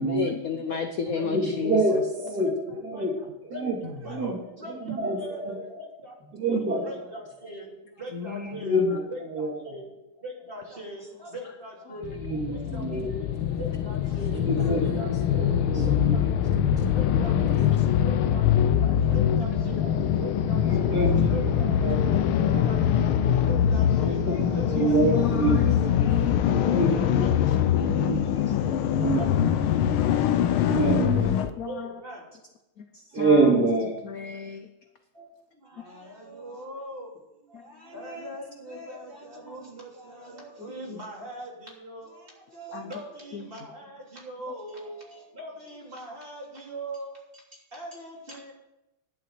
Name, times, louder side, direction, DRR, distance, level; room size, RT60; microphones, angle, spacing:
voice 1, 0.0-2.0 8.1-9.0 24.7-27.0 27.8-28.3 30.8-30.9 31.6-31.9 32.8-33.5 34.0-34.7 40.9-41.0 42.7-42.9 43.3-43.5, left 6 dB, 65° left, 8 dB, 0.8 m, -33 dB
voice 2, 0.6-1.3 1.8-2.0 2.3-5.4 5.7-8.8 9.1-22.1 22.4-25.3 25.7-26.4 26.7-27.4 28.8-29.4 30.0-30.1 30.5-30.8 31.6-32.4 33.1-33.2 35.1-48.5, right 1 dB, 25° right, -3 dB, 3.3 m, -41 dB
voice 3, 1.2-2.5 2.8-3.1 3.5-3.8 4.0-4.4 4.6-5.6 6.3-6.8 8.6-9.0 9.3-9.6 12.1-13.1 14.3-17.0 17.4-17.5 20.7-22.6 24.0-25.9 26.4-29.3 30.6-31.4 33.1-33.9, right 2 dB, 50° right, -2 dB, 3.0 m, -27 dB
sound 1, 12.0-31.5, left 9 dB, 80° left, 1.6 m, -23 dB
11.0 x 7.0 x 7.9 m, 0.94 s
omnidirectional pair, 2.3 m